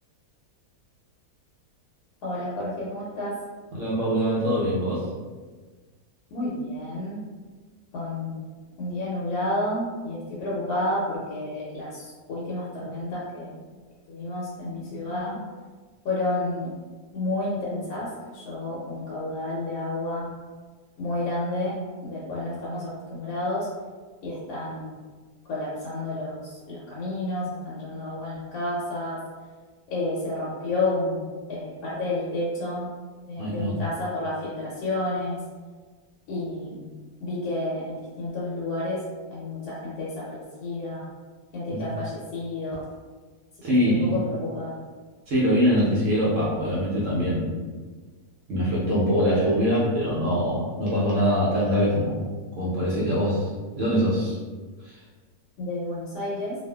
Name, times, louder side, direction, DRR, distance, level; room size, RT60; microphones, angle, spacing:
voice 1, 2.2-3.4 6.3-7.2 7.9-8.4 8.8-13.6 14.1-15.4 16.0-16.7 17.1-20.3 21.0-23.7 24.2-25.0 25.5-29.2 29.9-32.9 33.3-35.4 36.3-36.9 37.2-39.0 39.3-41.1 41.5-42.8 43.8-44.8 55.6-56.6, left 2 dB, 75° left, -6 dB, 1.1 m, -30 dB
voice 2, 3.7-5.1 33.4-33.7 41.7-41.8 43.6-44.2 45.3-47.6 48.5-52.3 52.6-54.4 54.8-55.0, equal, 60° right, -7 dB, 0.9 m, -23 dB
2.6 x 2.4 x 2.2 m, 1.4 s
omnidirectional pair, 1.7 m